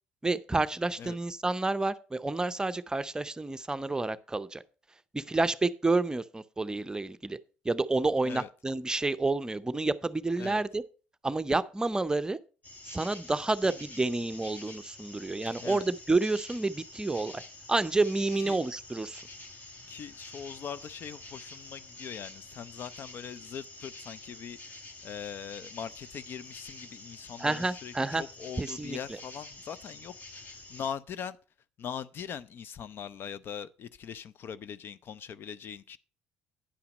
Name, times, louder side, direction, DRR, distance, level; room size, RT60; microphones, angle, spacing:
voice 1, 0.2-4.6 5.1-7.4 7.6-10.8 11.2-12.4 12.8-17.4 17.7-19.2 27.4-28.2 28.6-29.0, right 3 dB, 15° right, 0.6 m, -29 dB
sound 1, 12.6-30.9, left 2 dB, 35° left, 1.8 m, -48 dB
voice 2, 19.9-31.4 31.8-36.0, left 7 dB, 55° left, 0.5 m, -41 dB
9.9 x 5.7 x 5.2 m
hypercardioid pair, 65°, 5 cm